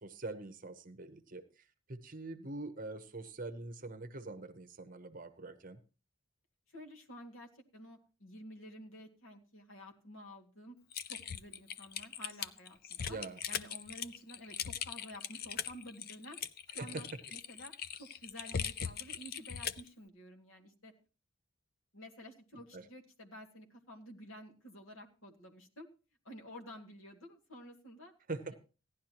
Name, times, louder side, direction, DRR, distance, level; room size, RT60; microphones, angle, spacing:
voice 1, 0.0-5.8 13.1-13.4 16.8-17.0 22.7-22.9 28.3-28.5, right 2 dB, 40° right, 9 dB, 0.8 m, -44 dB
voice 2, 6.7-10.8 11.1-13.2 13.5-16.4 16.7-17.7 18.0-20.9 21.9-25.9 26.2-28.1, equal, 70° left, 2 dB, 2.1 m, -51 dB
Typing, 10.9-19.9, left 8 dB, 45° left, 0.5 m, -40 dB
16.0 x 11.0 x 2.9 m, 0.34 s
head